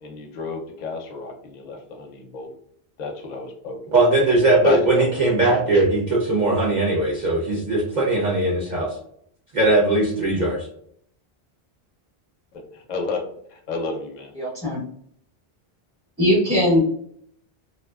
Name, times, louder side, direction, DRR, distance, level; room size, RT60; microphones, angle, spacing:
voice 1, 0.0-2.5 3.0-3.8 4.6-5.3 12.7-14.3, left 4 dB, 55° left, 3 dB, 0.6 m, -30 dB
voice 2, 3.9-8.9 9.5-10.7, right 2 dB, 50° right, -5 dB, 0.7 m, -19 dB
voice 3, 14.4-14.8 16.2-16.8, left 1 dB, 5° left, -8 dB, 0.6 m, -19 dB
2.5 x 2.2 x 2.2 m, 0.66 s
omnidirectional pair, 1.0 m